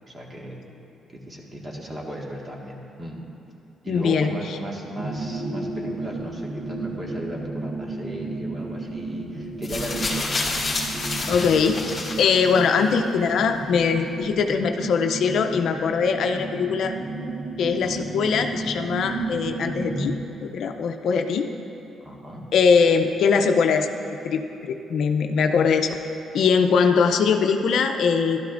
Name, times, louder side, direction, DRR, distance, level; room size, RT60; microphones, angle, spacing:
voice 1, 0.1-0.6 1.3-3.2 3.8-10.3 22.0-22.4, right 1 dB, 30° right, -2 dB, 1.8 m, -36 dB
voice 2, 3.9-4.3 11.3-11.8 12.2-16.9 17.6-21.5 22.5-23.9 24.2-25.9 26.3-28.4, left 5 dB, 70° left, 5 dB, 0.6 m, -21 dB
sound 1, 5.0-20.1, right 2 dB, 80° right, 1.1 m, -33 dB
sound 2, 9.6-12.9 13.8-13.9, left 2 dB, 25° left, 2.2 m, -29 dB
12.5 x 12.0 x 2.6 m, 2.9 s
cardioid pair, 90°, 0 cm